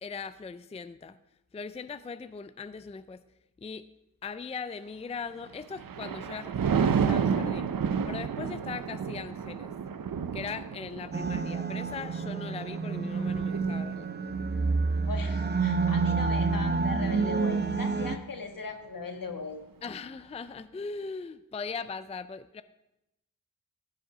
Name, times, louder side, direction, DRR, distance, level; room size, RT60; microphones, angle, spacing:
voice 1, 0.0-1.2 1.5-3.2 3.6-3.9 4.2-6.5 6.8-7.7 8.1-9.7 10.3-14.1 19.8-22.6, left 5 dB, 20° left, 13 dB, 0.4 m, -39 dB
Thunder, 5.4-16.9 17.4-17.7, right 6 dB, 75° right, 0.7 m, -32 dB
sound 1, 11.1-18.2, right 4 dB, 30° right, 0.7 m, -28 dB
voice 2, 15.0-19.6, left 4 dB, 75° left, 5 dB, 1.6 m, -39 dB
15.5 x 7.9 x 5.0 m, 0.91 s
wide cardioid pair, 110°, 34 cm